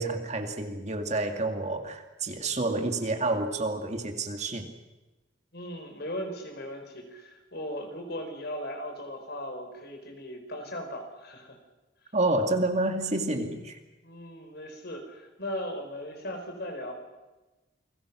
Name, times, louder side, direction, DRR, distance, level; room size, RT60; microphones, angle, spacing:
voice 1, 0.0-4.7 12.1-13.8, right 2 dB, 40° right, 5 dB, 2.2 m, -29 dB
voice 2, 5.5-11.6 14.0-17.0, equal, 60° left, 4 dB, 4.9 m, -38 dB
29.0 x 22.0 x 6.2 m, 1.1 s
head